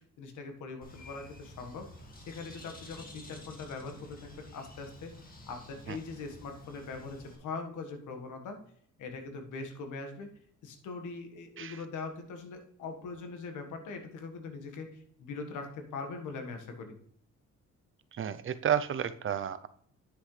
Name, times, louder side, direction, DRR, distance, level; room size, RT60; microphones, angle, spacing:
voice 1, 0.0-1.9 2.3-5.1 5.5-8.6 9.0-10.3 10.6-16.9, left 4 dB, 80° left, 5 dB, 1.6 m, -41 dB
Bird, 0.8-7.4, left 1 dB, 30° left, 2.0 m, -51 dB
voice 2, 18.1-19.7, right 9 dB, 45° right, 12 dB, 0.6 m, -31 dB
9.6 x 6.1 x 3.3 m, 0.62 s
cardioid pair, 90°, 30 cm